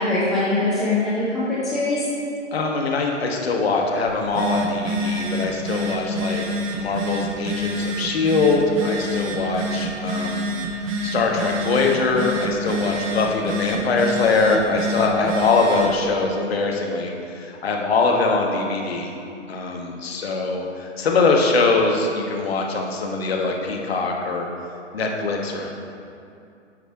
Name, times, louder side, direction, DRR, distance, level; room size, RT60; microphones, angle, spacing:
voice 1, 0.0-2.0, left 2 dB, ahead, -9 dB, 0.5 m, -22 dB
voice 2, 2.5-6.5 6.7-10.5 10.8-19.1 19.5-24.5 24.9-25.7, left 3 dB, 50° left, 1 dB, 1.4 m, -22 dB
Telephone, 4.1-16.0, equal, 25° right, 0.8 m, -27 dB
9.7 x 5.9 x 4.6 m, 2.6 s
figure-of-eight pair, 125°, 38 cm